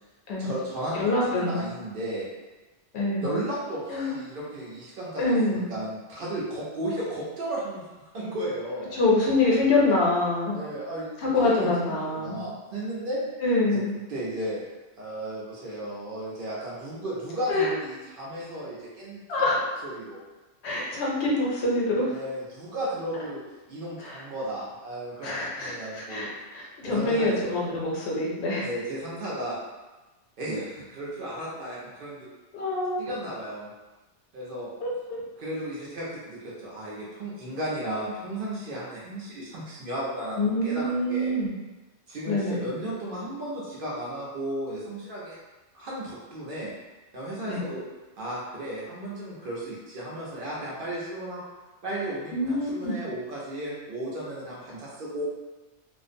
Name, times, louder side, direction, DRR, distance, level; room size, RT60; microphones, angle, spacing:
voice 1, 0.4-2.3 3.2-7.8 8.1-8.9 10.5-11.1 11.6-13.2 13.7-13.8 14.1-14.6 15.0-19.2 19.8-20.2 22.1-23.4 23.7-26.3 26.8-27.5 28.6-29.6 30.4-32.3 33.0-33.7 34.3-34.7 35.4-41.3 42.1-45.4 45.7-46.7 47.1-47.8 48.2-51.4 51.8-55.2, right 1 dB, 55° right, -6 dB, 0.8 m, -34 dB
voice 2, 0.9-1.6 2.9-3.3 3.9-4.2 5.2-5.7 8.9-10.5 11.2-12.4 13.4-13.9 17.5-17.7 19.3-19.6 20.6-22.1 24.0-24.2 25.2-28.7 32.5-33.0 34.8-35.2 40.4-41.5 42.3-42.6 47.5-47.6 52.3-53.0, left 2 dB, 70° left, -4 dB, 0.9 m, -25 dB
2.5 x 2.0 x 2.5 m, 1.2 s
omnidirectional pair, 1.2 m